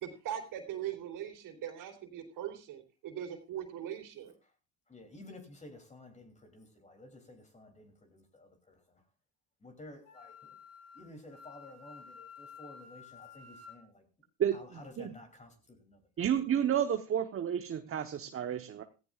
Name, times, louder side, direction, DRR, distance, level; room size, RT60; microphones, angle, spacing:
voice 1, 0.0-4.3, right 10 dB, 60° right, 3.4 m, -40 dB
voice 2, 4.9-9.0 9.6-10.4 10.9-14.0 14.5-16.3, left 2 dB, 20° left, 3.1 m, -53 dB
Wind instrument woodwind instrument, 10.0-13.8, left 6 dB, 45° left, 4.3 m, -52 dB
voice 3, 14.4-15.1 16.2-18.8, right 9 dB, 35° right, 1.1 m, -31 dB
16.0 x 15.0 x 2.4 m
supercardioid pair, 100°, 36 cm